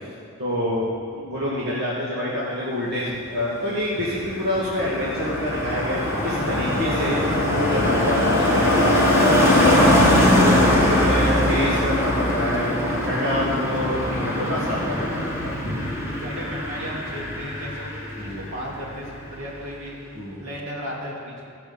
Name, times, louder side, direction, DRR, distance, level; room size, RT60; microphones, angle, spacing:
voice 1, 0.4-7.2 7.5-9.3 9.6-12.7 13.0-15.7 18.2-18.4 20.1-20.4, equal, 50° right, -8 dB, 2.2 m, -27 dB
Car passing by, 3.8-18.6 18.8-19.1, left 1 dB, 10° right, 2.1 m, -21 dB
voice 2, 16.2-20.0 20.4-21.5, equal, 65° right, -5 dB, 3.0 m, -35 dB
16.0 x 5.9 x 7.1 m, 2.4 s
head